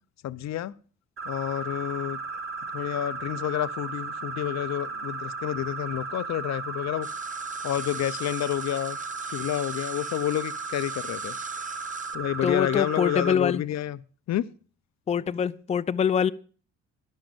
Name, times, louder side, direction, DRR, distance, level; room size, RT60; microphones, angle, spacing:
voice 1, 0.2-0.7 1.3-2.2 2.7-7.1 7.6-9.0 9.3-11.4 12.1-14.0 14.3-14.4, left 12 dB, 65° left, 17 dB, 0.6 m, -29 dB
sound 1, 1.2-13.3, right 4 dB, 45° right, 4.5 m, -35 dB
sound 2, 7.0-12.1, right 5 dB, 25° right, 0.8 m, -43 dB
voice 2, 12.4-13.6 15.1-16.3, left 7 dB, 20° left, 14 dB, 0.4 m, -24 dB
11.5 x 6.4 x 7.7 m, 0.40 s
cardioid pair, 90°, 30 cm